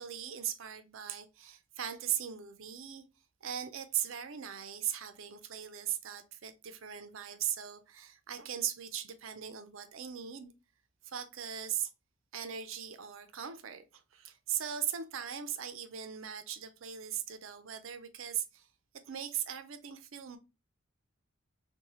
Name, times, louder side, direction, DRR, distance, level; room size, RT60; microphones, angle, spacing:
voice 1, 0.0-3.0 3.4-10.5 11.0-11.9 12.3-18.7 19.1-20.4, right 9 dB, 65° right, 0.5 m, -39 dB
3.9 x 2.2 x 3.0 m
head